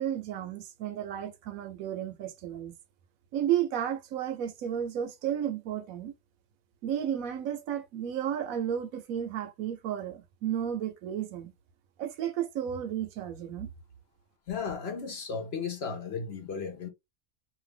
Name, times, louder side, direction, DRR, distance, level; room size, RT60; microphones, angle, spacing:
voice 1, 0.0-2.8 3.3-6.1 6.8-11.5 12.0-13.7, right 10 dB, 75° right, 1.0 m, -33 dB
voice 2, 14.5-16.9, left 5 dB, 50° left, 0.9 m, -35 dB
2.7 x 2.5 x 3.3 m
omnidirectional pair, 1.5 m